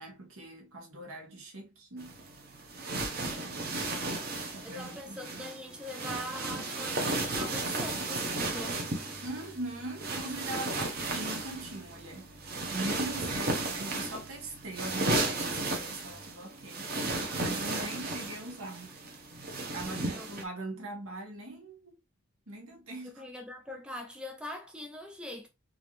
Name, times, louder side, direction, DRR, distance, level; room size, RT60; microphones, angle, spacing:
voice 1, 0.0-2.1 3.4-3.8 4.5-5.4 9.2-12.3 12.7-16.9 17.4-18.9 19.7-22.0 22.5-23.2, right 2 dB, 75° right, 1.4 m, -41 dB
sound 1, 2.0-20.4, right 2 dB, 45° right, 0.9 m, -34 dB
voice 2, 4.6-8.8 20.0-20.3 23.0-25.5, left 1 dB, 5° right, 0.3 m, -42 dB
3.9 x 2.7 x 3.1 m
head